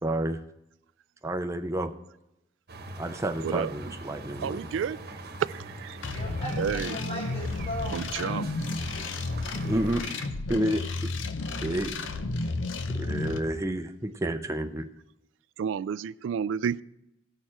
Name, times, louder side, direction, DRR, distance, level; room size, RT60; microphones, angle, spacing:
voice 1, 0.0-0.4 1.2-1.9 3.0-4.7 9.7-10.1 10.5-11.1 11.6-11.9 12.9-14.9, right 1 dB, 15° right, 0.5 m, -30 dB
sound 1, 2.7-10.3, right 2 dB, 55° right, 1.0 m, -43 dB
voice 2, 4.4-5.0 5.5-6.0 6.6-7.0 7.9-8.5 15.6-16.8, right 7 dB, 75° right, 0.3 m, -30 dB
sound 2, 6.0-13.4, left 3 dB, 85° left, 0.7 m, -32 dB
voice 3, 6.1-8.6, equal, 35° left, 2.0 m, -38 dB
17.5 x 6.5 x 4.4 m
head